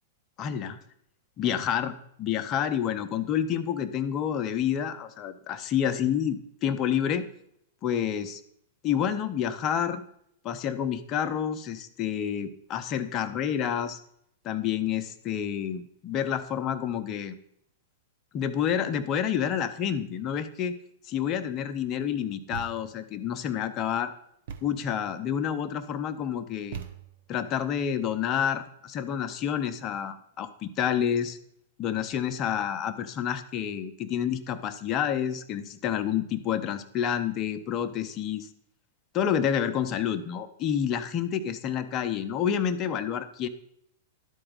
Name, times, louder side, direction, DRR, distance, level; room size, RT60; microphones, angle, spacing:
voice 1, 0.4-0.8 1.4-7.3 7.8-8.4 8.8-10.0 10.4-14.0 14.4-17.3 18.3-20.8 21.0-24.1 24.6-26.8 27.3-31.4 31.8-38.5 39.1-43.5, left 9 dB, 35° left, 10 dB, 0.7 m, -29 dB
Thump thud, 22.5-23.1 24.5-24.9 26.7-27.4, right 7 dB, 60° right, 0.8 m, -41 dB
12.0 x 4.4 x 3.9 m, 0.72 s
hypercardioid pair, 110°, 0 cm